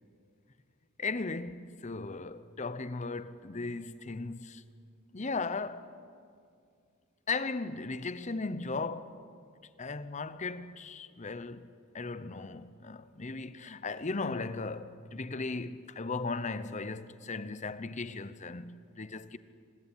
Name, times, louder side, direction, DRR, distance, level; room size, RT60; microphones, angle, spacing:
voice 1, 1.0-4.6 5.1-5.9 7.3-9.2 9.8-19.4, left 3 dB, 35° left, 0.8 m, -37 dB
25.5 x 19.5 x 9.1 m
head